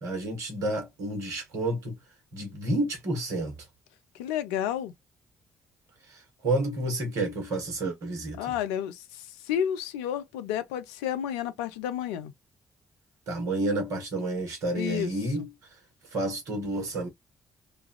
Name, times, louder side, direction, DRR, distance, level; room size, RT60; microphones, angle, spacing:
voice 1, 0.0-1.9 2.3-3.5 6.4-8.4 13.3-15.5 16.1-17.1, right 2 dB, 60° right, 1.3 m, -30 dB
voice 2, 4.1-4.9 8.4-12.3 14.7-15.5, left 10 dB, 70° left, 0.4 m, -31 dB
3.1 x 2.3 x 2.4 m
figure-of-eight pair, 40°, 6 cm